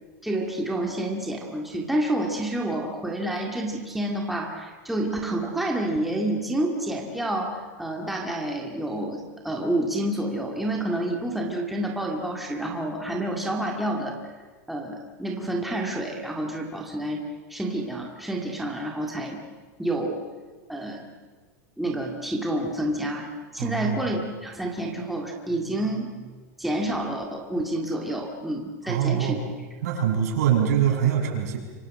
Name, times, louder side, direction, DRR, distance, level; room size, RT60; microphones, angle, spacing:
voice 1, 0.2-14.2 14.7-17.2 17.5-19.4 19.8-20.2 20.7-21.0 21.8-23.3 23.5-26.3 26.6-29.4, right 1 dB, ahead, 0 dB, 2.1 m, -29 dB
voice 2, 23.6-24.0 28.9-29.4 29.8-31.6, right 9 dB, 75° right, 1 dB, 7.0 m, -23 dB
27.5 x 24.5 x 7.7 m, 1.4 s
supercardioid pair, 160°, 9 cm